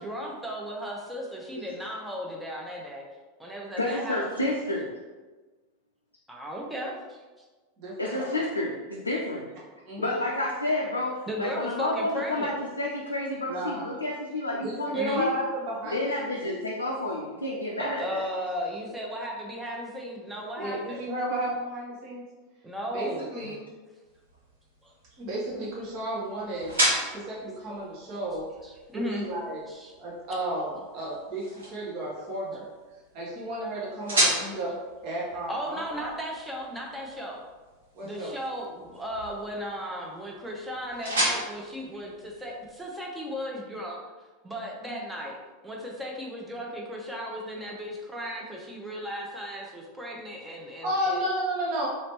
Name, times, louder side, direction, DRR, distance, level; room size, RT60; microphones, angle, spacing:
voice 1, 0.0-3.0 3.4-4.3 6.3-7.2 11.3-12.5 14.9-15.2 17.7-21.0 22.6-23.2 24.8-24.9 28.6-29.2 29.7-29.9 35.5-37.4 38.0-44.0 44.4-45.4 45.6-51.3, equal, 10° right, -2 dB, 0.8 m, -36 dB
voice 2, 3.8-4.9 8.0-9.5 10.0-15.3 15.8-18.2, left 1 dB, 85° left, -2 dB, 0.4 m, -30 dB
voice 3, 7.8-8.3 9.9-10.1 13.5-13.9 14.6-16.0 16.4-16.6 20.6-22.2 22.9-23.6 25.1-26.8 27.1-28.5 28.9-29.6 30.0-32.7 33.1-34.7 35.0-36.1 37.9-38.4 44.8-45.0 50.8-51.9, right 1 dB, 50° right, -5 dB, 1.3 m, -32 dB
sound 1, 24.0-42.9, equal, 75° right, 1.3 m, -35 dB
3.1 x 3.0 x 3.0 m, 1.3 s
figure-of-eight pair, 85°, 0 cm